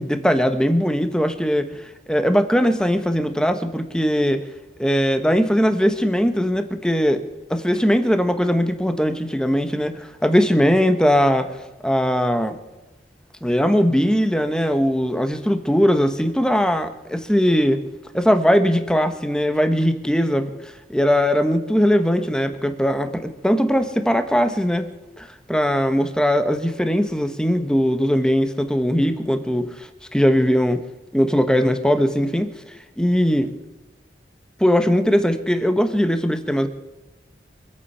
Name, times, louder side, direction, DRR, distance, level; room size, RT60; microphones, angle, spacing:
voice 1, 0.0-1.8 2.1-4.4 4.8-7.2 7.5-11.5 11.8-12.5 13.4-17.8 18.1-24.9 25.2-30.8 31.1-32.5 33.0-33.5 34.6-36.7, equal, 5° left, 8 dB, 1.1 m, -20 dB
24.5 x 8.5 x 5.6 m, 1.1 s
head